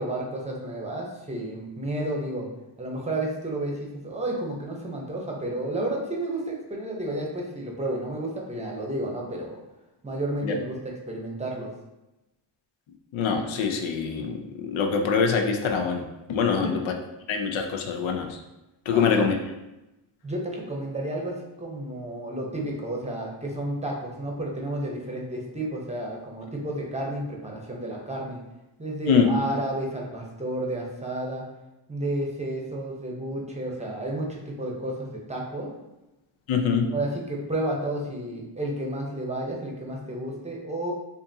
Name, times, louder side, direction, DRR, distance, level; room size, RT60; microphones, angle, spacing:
voice 1, 0.0-2.5 2.8-9.6 10.0-10.8 11.1-11.7 16.6-16.7 18.9-19.2 20.2-28.4 28.8-31.4 31.9-35.7 36.9-40.9, right 1 dB, 15° right, -1 dB, 0.7 m, -31 dB
voice 2, 13.1-16.9 17.3-18.4 18.9-19.4 29.1-29.3 36.5-36.9, left 6 dB, 80° left, 4 dB, 0.7 m, -24 dB
4.9 x 2.6 x 2.7 m, 0.97 s
cardioid pair, 100°, 46 cm